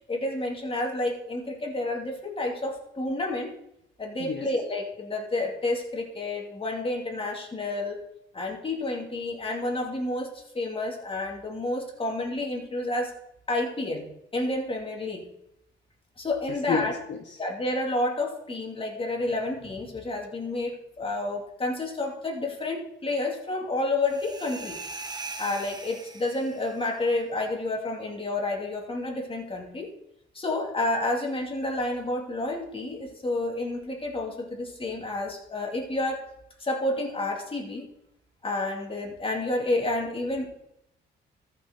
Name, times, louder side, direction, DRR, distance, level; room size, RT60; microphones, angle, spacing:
voice 1, 0.0-3.5 4.0-8.0 8.3-13.1 13.5-14.1 14.3-15.2 16.2-17.0 17.4-24.8 25.4-29.9 30.3-36.2 36.6-37.9 38.4-40.5, left 2 dB, 25° left, 0 dB, 2.5 m, -30 dB
voice 2, 16.7-17.3, left 6 dB, 65° left, 3 dB, 1.2 m, -30 dB
sound 1, 24.0-26.8, right 3 dB, 20° right, 1.2 m, -40 dB
13.5 x 5.9 x 4.3 m, 0.80 s
cardioid pair, 90°, 20 cm